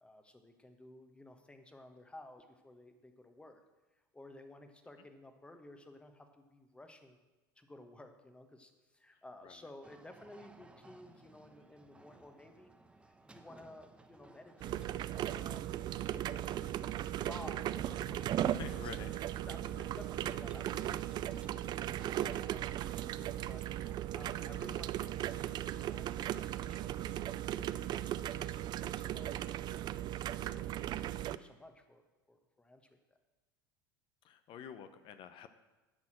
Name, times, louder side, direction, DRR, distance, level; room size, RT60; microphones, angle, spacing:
voice 1, 0.0-3.6 4.1-7.2 7.6-12.7 13.1-18.8 19.1-21.7 22.2-22.6 23.0-27.4 27.7-32.0 32.3-32.9, left 1 dB, 10° left, 6 dB, 1.1 m, -55 dB
sound 1, 9.8-24.0, right 2 dB, 10° right, 0.8 m, -59 dB
sound 2, 14.6-31.4, right 12 dB, 40° right, 0.3 m, -37 dB
voice 2, 18.5-19.2 34.2-35.5, left 8 dB, 45° left, 10 dB, 0.7 m, -48 dB
11.0 x 4.1 x 7.4 m, 1.1 s
hypercardioid pair, 80°, 12 cm